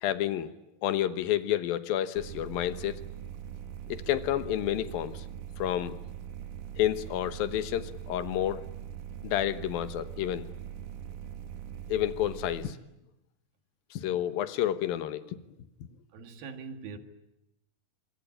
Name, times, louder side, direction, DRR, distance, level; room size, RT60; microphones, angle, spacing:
voice 1, 0.0-0.5 0.8-3.0 3.9-5.2 5.6-6.0 6.8-8.6 9.2-10.5 11.9-12.8 13.9-15.4, left 12 dB, 85° left, 12 dB, 3.0 m, -30 dB
sound 1, 2.2-12.7, right 9 dB, 70° right, 2.4 m, -42 dB
voice 2, 16.1-17.0, right 5 dB, 90° right, 7 dB, 3.7 m, -42 dB
25.0 x 22.5 x 9.9 m, 0.89 s
omnidirectional pair, 4.0 m